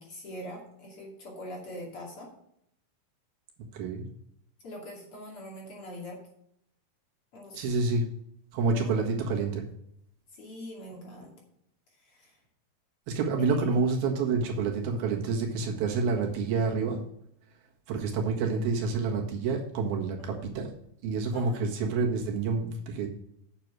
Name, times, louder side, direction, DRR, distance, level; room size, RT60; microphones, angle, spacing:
voice 1, 0.0-2.3 4.6-6.2 7.3-7.8 8.8-9.1 10.3-11.3 12.0-12.4 13.4-13.8 20.2-20.4 21.3-21.6, equal, 40° left, -2 dB, 3.2 m, -43 dB
voice 2, 3.7-4.1 7.5-8.0 8.5-9.6 13.1-17.0 17.9-20.7 21.0-23.1, right 4 dB, 90° right, 0 dB, 3.5 m, -28 dB
8.9 x 6.7 x 6.1 m, 0.74 s
omnidirectional pair, 4.1 m